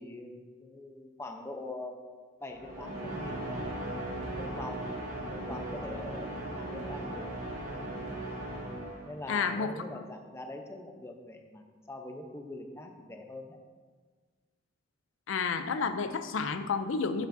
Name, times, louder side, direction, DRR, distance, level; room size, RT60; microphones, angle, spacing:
voice 1, 0.0-2.1 2.4-3.6 4.4-4.9 5.3-7.3 9.0-13.6, left 2 dB, 15° left, 3 dB, 0.7 m, -43 dB
sound 1, 2.5-9.4, right 1 dB, 80° right, 2.0 m, -38 dB
voice 2, 9.3-9.7 15.3-17.3, left 5 dB, 70° left, 9 dB, 0.5 m, -30 dB
11.5 x 7.1 x 2.7 m, 1.5 s
head